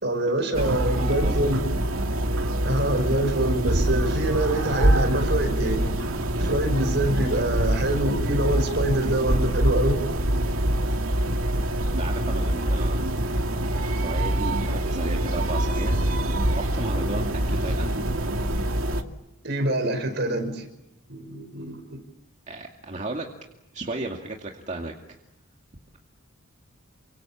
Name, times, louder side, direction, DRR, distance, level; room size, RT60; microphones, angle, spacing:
voice 1, 0.0-1.7 2.6-5.9 6.3-10.0 19.4-20.7 21.1-22.0, right 1 dB, 55° right, 8 dB, 5.2 m, -25 dB
sound 1, 0.5-19.0, right 1 dB, 75° right, 2.4 m, -25 dB
voice 2, 0.9-1.4 12.0-13.0 13.8-16.0 16.6-18.0 22.5-23.3 23.7-24.9, right 2 dB, 35° right, 1 dB, 2.3 m, -34 dB
29.0 x 25.5 x 7.3 m, 0.89 s
head